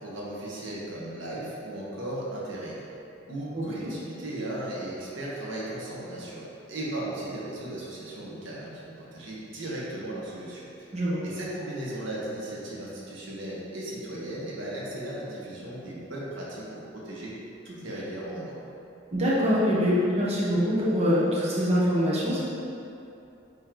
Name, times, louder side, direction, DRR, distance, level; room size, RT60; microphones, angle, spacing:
voice 1, 0.0-2.8 3.3-10.9 11.2-17.3 17.6-18.6, right 1 dB, 80° right, -6 dB, 1.3 m, -36 dB
voice 2, 19.1-22.4, equal, 35° right, -8 dB, 1.1 m, -24 dB
9.1 x 3.2 x 3.9 m, 2.8 s
head